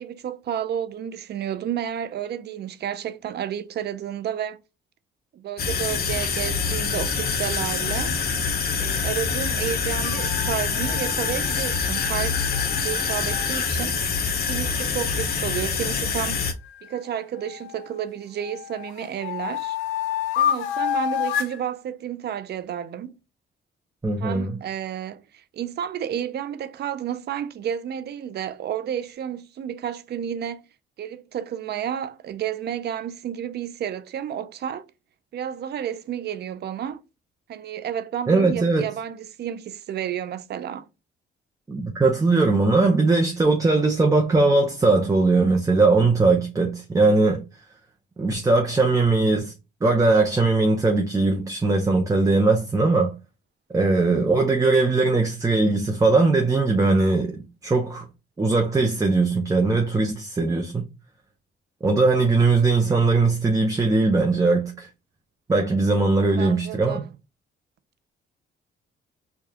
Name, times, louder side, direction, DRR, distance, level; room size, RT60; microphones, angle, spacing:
voice 1, 0.0-4.6 5.3-8.2 8.8-14.0 14.4-16.4 16.8-19.8 20.4-23.2 24.2-30.7 31.0-34.9 35.3-37.0 37.5-40.9 66.4-67.0, right 9 dB, 55° right, 0.5 m, -31 dB
sound 1, 5.6-16.5, left 5 dB, 50° left, 0.8 m, -25 dB
sound 2, 9.9-13.7 16.6-17.9 18.4-21.6, left 10 dB, 80° left, 0.4 m, -30 dB
voice 2, 24.0-24.6 38.3-38.9 41.7-47.4 48.2-49.5 49.8-53.1 53.7-58.1 58.4-60.8 61.8-64.9 65.5-67.0, right 3 dB, 15° right, 0.7 m, -20 dB
4.8 x 2.3 x 2.8 m
cardioid pair, 90°, 20 cm